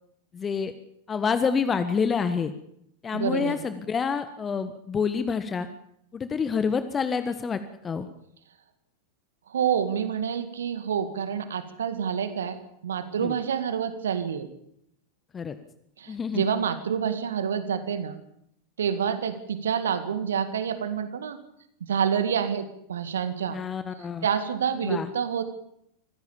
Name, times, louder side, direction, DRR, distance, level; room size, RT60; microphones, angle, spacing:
voice 1, 0.3-0.7 1.1-2.5 3.0-5.7 6.1-8.1 13.2-13.3 15.3-15.6 16.1-16.4 23.5-24.3 24.8-25.1, left 6 dB, 20° left, 11 dB, 1.5 m, -27 dB
voice 2, 3.1-3.6 9.5-12.6 12.8-14.5 16.0-18.1 18.8-21.4 21.8-23.6 24.2-25.4, right 7 dB, 65° right, 11 dB, 2.0 m, -28 dB
26.0 x 16.5 x 7.1 m, 0.74 s
figure-of-eight pair, 90°, 0 cm